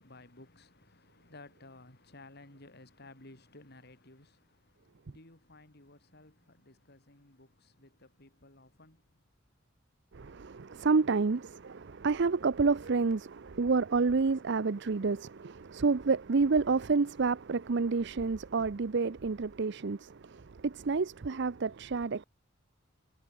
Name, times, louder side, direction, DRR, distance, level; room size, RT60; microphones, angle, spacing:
voice 1, 0.0-9.2, left 2 dB, 55° left, 4.4 m, -56 dB
voice 2, 10.1-22.2, right 4 dB, 60° right, 0.6 m, -29 dB
head